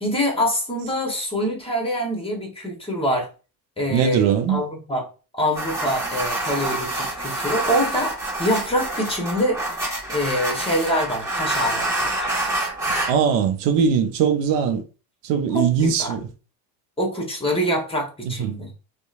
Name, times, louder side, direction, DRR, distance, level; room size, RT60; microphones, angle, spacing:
voice 1, 0.0-3.3 3.8-5.1 5.3-9.6 10.1-12.2 15.5-16.2 17.0-18.7, equal, 10° left, 1.0 m, -25 dB
voice 2, 3.9-4.6 13.1-14.8 15.2-16.3 18.2-18.5, right 7 dB, 65° right, 0.6 m, -20 dB
sound 1, 5.5-13.1, right 2 dB, 5° right, 1.3 m, -27 dB
2.7 x 2.2 x 2.5 m
supercardioid pair, 85°, 46 cm